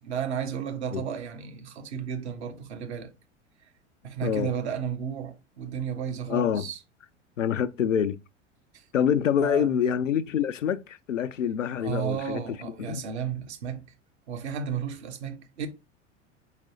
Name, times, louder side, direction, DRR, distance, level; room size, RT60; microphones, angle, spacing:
voice 1, 0.0-3.1 4.0-6.8 8.7-8.8 9.4-9.8 11.8-13.8 14.3-15.7, right 8 dB, 60° right, 1.1 m, -33 dB
voice 2, 6.3-6.7 7.4-8.2 8.9-13.0, left 8 dB, 80° left, 0.5 m, -26 dB
4.6 x 4.0 x 2.8 m
figure-of-eight pair, 85°, 37 cm